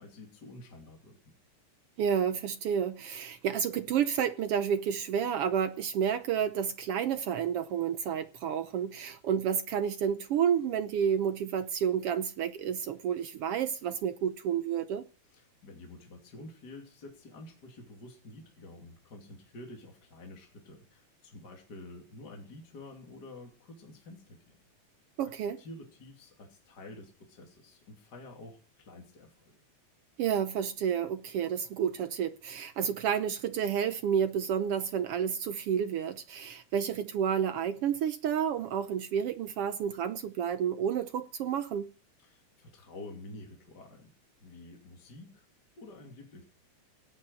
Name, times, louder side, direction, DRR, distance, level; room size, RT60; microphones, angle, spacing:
voice 1, 0.0-1.3 15.3-24.6 25.2-25.3 25.6-29.3 42.2-44.1 44.4-45.4 45.8-46.4, left 2 dB, 35° left, 3.1 m, -49 dB
voice 2, 2.0-15.1 25.2-25.6 30.2-41.9, right 8 dB, 70° right, 1.4 m, -30 dB
17.5 x 8.7 x 6.3 m
omnidirectional pair, 3.4 m